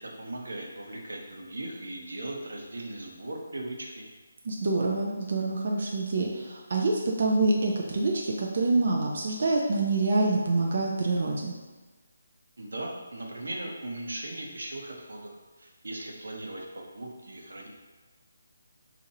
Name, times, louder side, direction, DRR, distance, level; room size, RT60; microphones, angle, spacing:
voice 1, 0.0-4.1 12.6-15.3 15.6-17.7, right 1 dB, 90° right, -1 dB, 0.7 m, -38 dB
voice 2, 4.5-11.5, right 2 dB, 45° right, -1 dB, 0.4 m, -26 dB
2.8 x 2.5 x 4.1 m, 1.3 s
hypercardioid pair, 175°, 0 cm